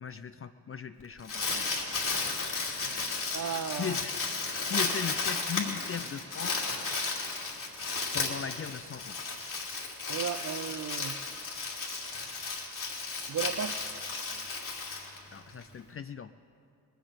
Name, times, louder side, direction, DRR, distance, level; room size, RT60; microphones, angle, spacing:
voice 1, 0.0-1.4 3.8-4.2 4.7-6.7 8.1-9.2 15.3-16.3, left 7 dB, 35° left, 11 dB, 0.5 m, -38 dB
Crumpling crinkling, 1.0-15.6, left 4 dB, 50° left, 2.8 m, -34 dB
voice 2, 3.3-4.0 10.1-11.2 13.3-13.8, right 7 dB, 50° right, 11 dB, 0.7 m, -34 dB
19.5 x 8.1 x 8.0 m, 2.5 s
cardioid pair, 65°, 40 cm